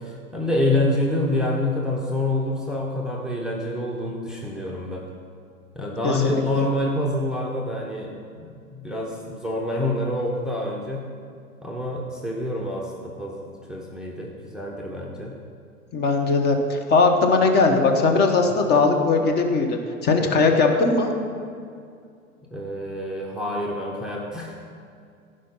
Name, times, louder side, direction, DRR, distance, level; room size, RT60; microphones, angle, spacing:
voice 1, 0.0-5.1 5.7-11.1 11.6-15.3 17.7-17.8 22.5-24.5, left 1 dB, ahead, -1 dB, 0.9 m, -27 dB
voice 2, 6.0-6.4 15.9-21.1, left 3 dB, 25° left, 3 dB, 1.0 m, -19 dB
15.0 x 5.2 x 5.5 m, 2.3 s
figure-of-eight pair, 100°, 43 cm